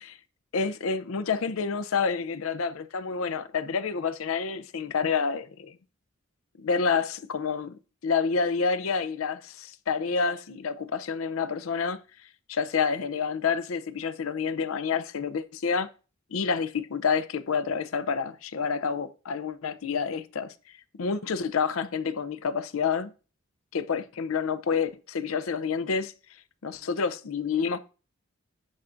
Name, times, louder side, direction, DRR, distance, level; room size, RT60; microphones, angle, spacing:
voice 1, 0.5-5.8 6.6-12.0 12.5-15.9 16.3-20.5 20.9-23.1 23.7-26.1 26.6-27.8, left 5 dB, 85° left, 0.6 m, -28 dB
10.5 x 5.7 x 2.5 m
head